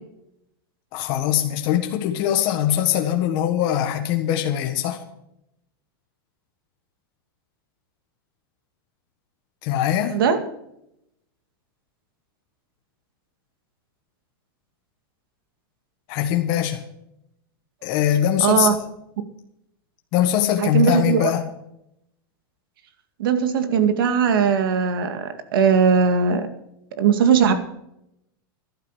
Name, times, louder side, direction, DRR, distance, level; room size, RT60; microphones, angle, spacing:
voice 1, 0.9-5.0 9.6-10.2 16.1-16.8 17.8-18.8 20.1-21.5, left 11 dB, 35° left, 3 dB, 1.5 m, -22 dB
voice 2, 18.4-18.7 20.6-21.3 23.2-26.4 27.0-27.5, right 6 dB, 70° right, 8 dB, 2.2 m, -19 dB
14.0 x 12.0 x 5.0 m, 0.80 s
supercardioid pair, 170°, 12 cm